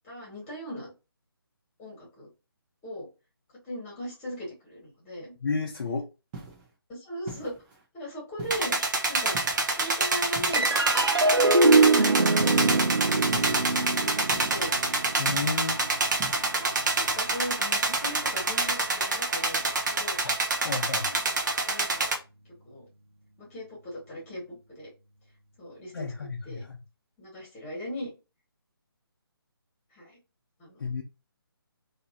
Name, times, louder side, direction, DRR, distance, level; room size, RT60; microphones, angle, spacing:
voice 1, 0.0-0.9 1.8-2.3 2.8-3.1 3.6-5.3 6.9-7.5 7.9-8.8 9.1-9.4 9.7-13.7 14.0-14.8 16.5-20.2 20.9-21.3 21.7-22.1 22.6-22.8 23.4-24.9 25.6-26.6 27.2-28.1 29.9-30.2 30.6-30.8, equal, 15° left, 2.0 m, -39 dB
voice 2, 5.4-6.0 15.2-15.8 20.6-21.1 25.9-26.8 30.8-31.0, left 4 dB, 55° left, 0.7 m, -31 dB
sound 1, 6.3-6.7 7.3-7.8 8.4-8.8 9.3-9.8 10.4-10.9 12.4-12.7 13.3-13.7 14.3-14.8 15.3-15.7 16.2-16.5, right 3 dB, 20° right, 1.0 m, -43 dB
sound 2, 8.5-22.1, right 3 dB, 50° right, 0.8 m, -27 dB
sound 3, 10.5-17.2, right 3 dB, 85° right, 0.5 m, -24 dB
4.0 x 2.8 x 2.8 m
figure-of-eight pair, 145°, 13 cm